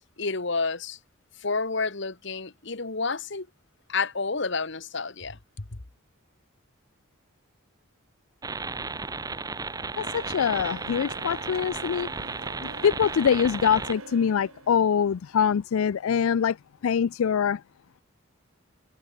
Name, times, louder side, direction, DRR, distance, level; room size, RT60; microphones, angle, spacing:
voice 1, 0.2-1.0 1.4-3.5 3.9-5.7, left 4 dB, 55° left, 1.4 m, -30 dB
sound 1, 8.4-13.9, right 4 dB, 15° right, 0.6 m, -34 dB
voice 2, 10.0-12.1 12.6-16.6 16.8-17.6, left 7 dB, 75° left, 0.4 m, -24 dB
sound 2, 10.0-15.8, right 3 dB, 80° right, 2.3 m, -46 dB
head